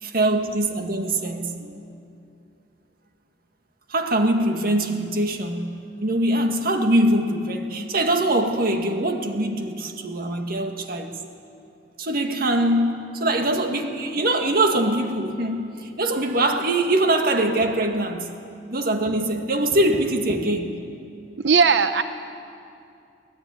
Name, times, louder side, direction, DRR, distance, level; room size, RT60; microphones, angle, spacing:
voice 1, 0.0-1.9 3.9-11.1 12.0-18.3 18.7-20.7, right 1 dB, 55° right, 5 dB, 2.0 m, -23 dB
voice 2, 21.4-22.0, right 5 dB, 70° right, 10 dB, 0.7 m, -17 dB
23.5 x 19.0 x 9.7 m, 2.5 s
head